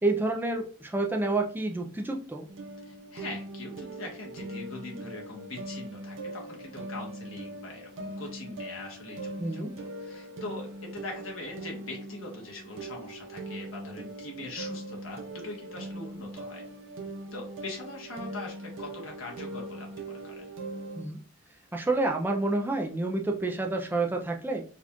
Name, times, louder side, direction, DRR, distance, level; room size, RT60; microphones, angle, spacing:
voice 1, 0.0-2.5 9.4-9.7 21.0-21.2 21.7-24.6, right 2 dB, 10° right, 2 dB, 0.4 m, -29 dB
sound 1, 2.5-21.0, right 2 dB, 70° right, 0.6 m, -41 dB
voice 2, 2.9-16.6 17.3-20.4, left 2 dB, 90° left, -1 dB, 1.3 m, -42 dB
4.0 x 2.4 x 2.9 m, 0.41 s
head